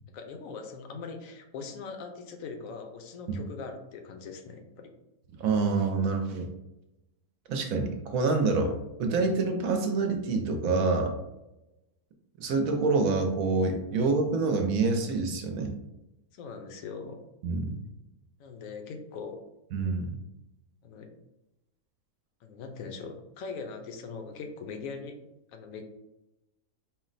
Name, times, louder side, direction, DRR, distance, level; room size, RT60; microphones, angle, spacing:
voice 1, 0.1-4.9 13.9-14.0 16.3-17.2 18.4-19.4 20.8-21.1 22.4-25.1 25.5-25.8, left 5 dB, 70° left, 5 dB, 0.9 m, -41 dB
voice 2, 5.4-6.5 7.5-11.1 12.4-15.7 17.4-17.8 19.7-20.1, right 3 dB, 70° right, 4 dB, 0.9 m, -27 dB
4.3 x 2.1 x 3.8 m, 0.92 s
omnidirectional pair, 1.6 m